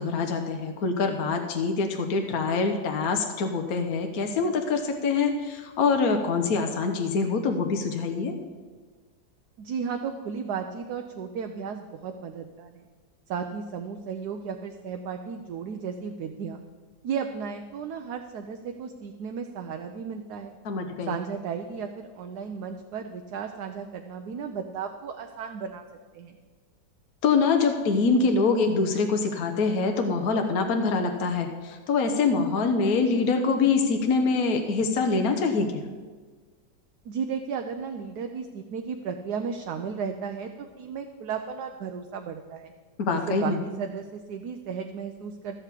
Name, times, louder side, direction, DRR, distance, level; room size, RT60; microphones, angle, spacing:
voice 1, 0.0-8.3 20.6-21.1 27.2-35.9 43.0-43.6, left 4 dB, 60° left, 4 dB, 1.3 m, -25 dB
voice 2, 9.6-12.9 13.3-16.6 17.0-20.6 21.1-25.8 26.1-26.3 37.0-42.7 43.3-45.6, right 6 dB, 70° right, 5 dB, 1.2 m, -34 dB
13.0 x 5.8 x 8.3 m, 1.4 s
omnidirectional pair, 1.9 m